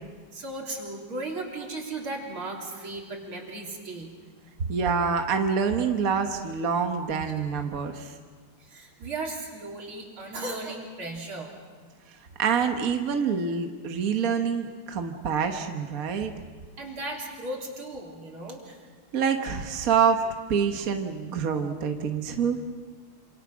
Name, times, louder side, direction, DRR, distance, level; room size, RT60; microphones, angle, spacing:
voice 1, 0.3-4.1 7.2-7.4 8.7-11.6 16.8-18.8, right 2 dB, 75° right, -1 dB, 4.4 m, -36 dB
voice 2, 4.7-8.1 12.4-16.3 19.1-22.6, right 6 dB, 45° right, 5 dB, 1.6 m, -26 dB
27.5 x 27.0 x 6.2 m, 1.5 s
omnidirectional pair, 2.3 m